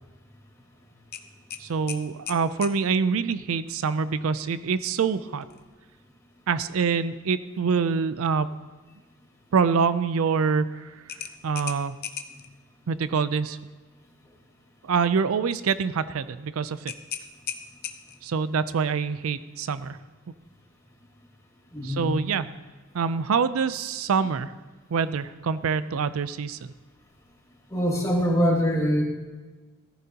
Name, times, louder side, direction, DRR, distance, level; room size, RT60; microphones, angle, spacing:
sound 1, 1.1-2.8 5.4-5.6 6.1-6.2 11.1-12.5 16.9-18.3, left 9 dB, 50° left, 0.7 m, -37 dB
voice 1, 1.6-5.5 6.5-8.5 9.5-10.9 11.4-12.0 12.9-13.6 14.8-16.9 18.2-20.0 21.8-22.5 22.9-24.5 24.9-26.7, right 5 dB, 80° right, 14 dB, 0.4 m, -25 dB
voice 2, 21.7-22.1 27.7-29.0, equal, 15° left, -2 dB, 2.0 m, -23 dB
14.5 x 14.0 x 2.9 m, 1.3 s
head